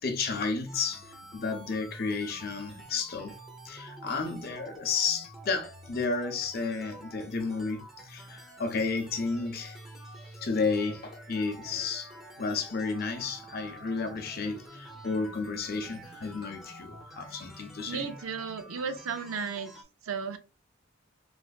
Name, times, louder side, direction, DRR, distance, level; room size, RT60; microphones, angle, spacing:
voice 1, 0.0-3.4 3.6-9.8 10.2-12.1 12.4-18.1, left 4 dB, 45° left, 0.5 m, -32 dB
sound 1, 0.7-19.8, right 1 dB, ahead, 0.7 m, -48 dB
voice 2, 17.9-19.7 20.0-20.4, right 6 dB, 85° right, 0.5 m, -34 dB
3.2 x 2.4 x 2.4 m
head